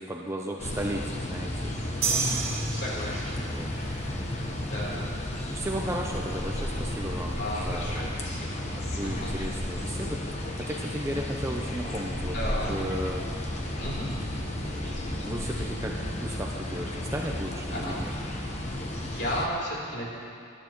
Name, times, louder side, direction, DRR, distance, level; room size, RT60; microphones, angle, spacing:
voice 1, 0.0-1.7 3.4-3.7 4.4-4.5 4.8-5.0 5.5-8.1 8.7-12.4 12.7-13.2 14.6-18.1, right 1 dB, 10° right, 0 dB, 0.6 m, -35 dB
sound 1, 0.6-19.5, left 1 dB, 30° left, 1.1 m, -33 dB
voice 2, 2.0-3.4 4.6-5.0 7.3-8.6 9.0-9.4 12.2-12.7 13.8-14.1 17.7-18.0 18.9-20.0, equal, 50° left, -5 dB, 3.6 m, -34 dB
sound 2, 2.0-3.6, right 6 dB, 70° right, 1.6 m, -30 dB
20.5 x 11.5 x 3.1 m, 2.5 s
head